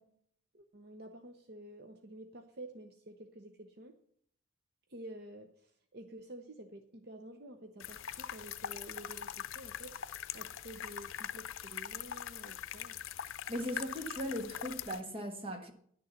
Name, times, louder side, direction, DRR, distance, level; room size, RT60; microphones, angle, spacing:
voice 1, 0.5-4.0 4.9-10.0 10.3-13.0, right 1 dB, 50° right, 0.8 m, -50 dB
sound 1, 7.8-15.0, left 10 dB, 90° left, 0.6 m, -42 dB
voice 2, 13.5-15.7, equal, 30° right, 1.6 m, -38 dB
11.0 x 6.7 x 7.2 m
head